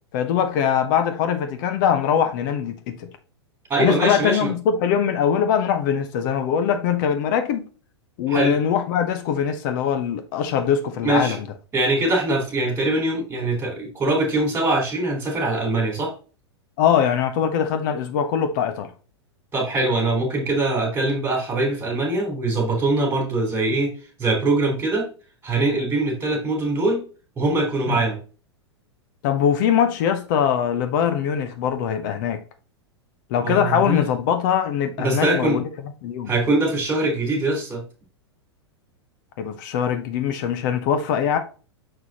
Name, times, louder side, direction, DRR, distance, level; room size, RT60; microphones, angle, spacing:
voice 1, 0.1-3.1 3.8-7.7 8.2-11.5 16.8-18.9 27.9-28.0 29.2-32.4 33.3-35.6 36.0-36.3 39.4-41.4, left 8 dB, 45° left, 0.9 m, -22 dB
voice 2, 3.7-4.5 8.3-8.5 11.0-11.3 11.7-16.1 19.5-23.9 24.2-25.1 25.4-27.0 27.4-28.2 33.4-34.0 35.0-35.6 36.3-37.8, right 2 dB, 15° right, 3.4 m, -22 dB
6.7 x 6.1 x 2.9 m
figure-of-eight pair, 100°, 14 cm